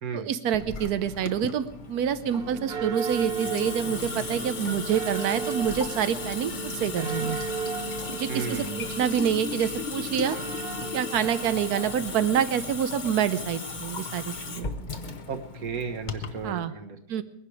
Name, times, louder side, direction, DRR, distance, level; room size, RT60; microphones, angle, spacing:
voice 1, 0.1-7.4 8.1-10.4 10.9-14.7 16.4-16.7 17.1-17.2, right 9 dB, 90° right, 12 dB, 1.3 m, -27 dB
Water tap faucet / Sink (filling or washing) / Drip, 0.5-16.5, left 4 dB, 35° left, 0.9 m, -36 dB
sound 1, 2.3-11.9, right 5 dB, 45° right, 1.7 m, -35 dB
voice 2, 8.3-8.9 15.3-17.2, right 6 dB, 70° right, 5 dB, 1.9 m, -35 dB
21.5 x 11.0 x 4.8 m, 0.75 s
omnidirectional pair, 1.6 m